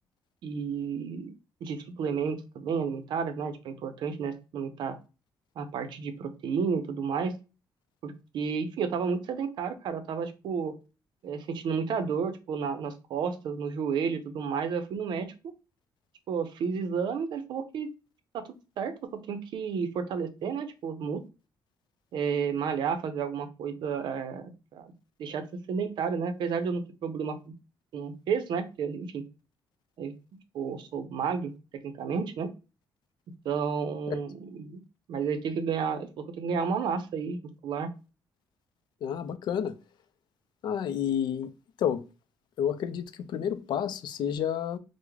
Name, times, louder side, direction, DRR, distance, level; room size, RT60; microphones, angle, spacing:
voice 1, 0.4-1.3 1.6-5.0 5.6-7.4 8.0-10.7 11.2-15.3 16.3-17.9 18.3-18.4 18.8-21.2 22.1-24.9 25.2-27.4 27.9-29.2 30.0-30.1 30.5-32.5 33.4-34.8 35.1-37.4 37.6-37.9, right 6 dB, 70° right, 0.5 m, -31 dB
voice 2, 39.0-39.8 40.6-41.5 41.8-42.0 42.6-44.8, left 9 dB, 65° left, 0.4 m, -30 dB
3.5 x 2.0 x 3.1 m
cardioid pair, 145°, 8 cm